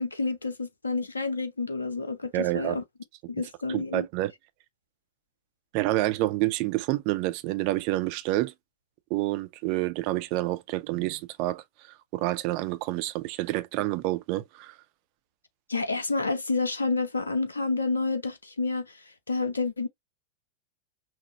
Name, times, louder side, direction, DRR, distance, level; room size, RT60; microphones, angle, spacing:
voice 1, 0.0-2.8 3.3-4.1 15.7-19.0 19.3-19.9, left 3 dB, 75° left, 0.6 m, -29 dB
voice 2, 2.3-2.8 3.7-4.3 5.7-8.5 9.1-14.8, right 17 dB, 45° right, 0.6 m, -28 dB
6.0 x 2.1 x 2.8 m
figure-of-eight pair, 90°, 0 cm